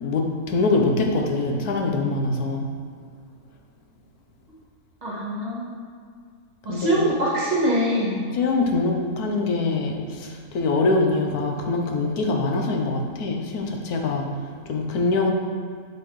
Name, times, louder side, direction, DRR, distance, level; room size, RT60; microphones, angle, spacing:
voice 1, 0.0-2.6 6.7-7.0 8.4-10.0 10.5-14.3 14.7-15.3, left 3 dB, 85° left, 2 dB, 1.4 m, -23 dB
voice 2, 5.0-5.8 6.6-8.3, right 1 dB, 30° right, -7 dB, 2.0 m, -24 dB
8.0 x 7.3 x 3.2 m, 2.1 s
omnidirectional pair, 1.6 m